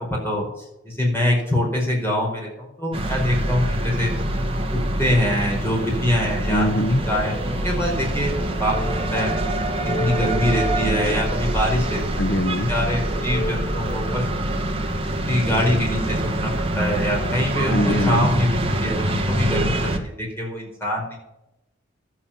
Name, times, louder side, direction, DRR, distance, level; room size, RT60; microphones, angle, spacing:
voice 1, 0.0-4.1 4.5-6.7 7.1-9.3 9.8-12.2 12.7-14.7 15.3-21.2, left 1 dB, 10° left, -2 dB, 4.7 m, -24 dB
sound 1, 2.9-20.0, right 1 dB, 25° right, 1.6 m, -25 dB
voice 2, 6.5-7.0 12.2-12.7 17.7-18.3, left 1 dB, 55° left, 8 dB, 0.8 m, -22 dB
sound 2, 7.0-14.0, left 1 dB, 35° left, 2.0 m, -34 dB
13.0 x 8.2 x 7.0 m, 0.88 s
head